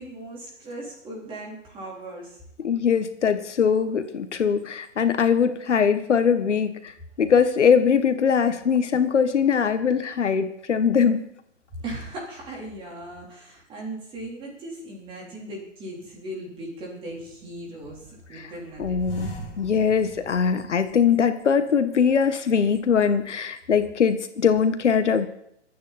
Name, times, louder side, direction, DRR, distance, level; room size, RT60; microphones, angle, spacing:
voice 1, 0.0-2.4 11.8-19.0, right 1 dB, 15° right, -1 dB, 3.7 m, -38 dB
voice 2, 2.6-6.9 7.2-11.2 18.8-25.3, left 6 dB, 70° left, 10 dB, 1.6 m, -21 dB
sound 1, 17.1-18.3 18.7-21.1 21.5-21.6 22.3-23.1, equal, 20° left, 3.1 m, -41 dB
24.5 x 9.5 x 4.3 m, 0.74 s
hypercardioid pair, 155°, 36 cm